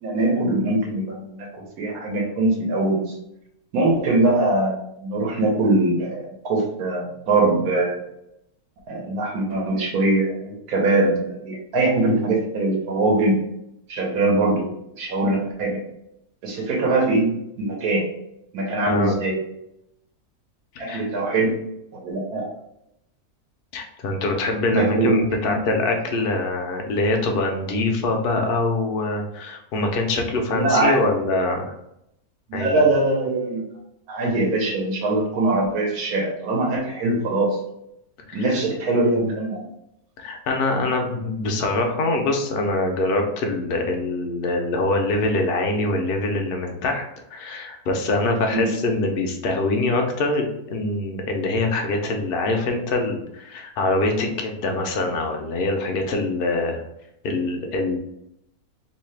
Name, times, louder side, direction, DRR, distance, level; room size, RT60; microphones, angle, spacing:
voice 1, 0.0-3.2 3.7-8.0 8.9-13.4 13.9-14.7 15.0-15.8 16.4-18.1 18.5-19.4 20.8-21.6 21.9-22.5 24.7-25.6 30.5-31.0 32.5-33.6 34.1-37.6 38.3-39.6 48.5-48.8, right 2 dB, 75° right, 0 dB, 1.4 m, -22 dB
voice 2, 20.7-21.1 23.7-31.7 32.5-32.8 38.3-38.5 40.2-47.1 47.3-56.8 57.2-58.0, left 2 dB, 60° left, 3 dB, 0.6 m, -24 dB
3.1 x 2.7 x 3.2 m, 0.79 s
omnidirectional pair, 1.6 m